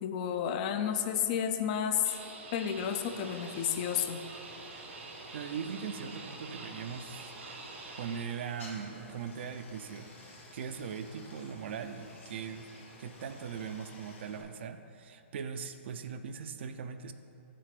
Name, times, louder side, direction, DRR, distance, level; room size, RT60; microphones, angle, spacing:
voice 1, 0.0-2.2 2.5-4.2, left 9 dB, 35° left, 8 dB, 0.4 m, -31 dB
sound 1, 2.0-8.2, right 3 dB, 75° right, 1.2 m, -46 dB
Stream, 2.8-14.4, left 2 dB, 70° left, 1.7 m, -53 dB
voice 2, 5.3-7.3 8.0-12.7 13.0-17.1, right 6 dB, 60° right, 9 dB, 0.5 m, -40 dB
7.5 x 4.1 x 6.7 m, 2.6 s
hypercardioid pair, 155°, 7 cm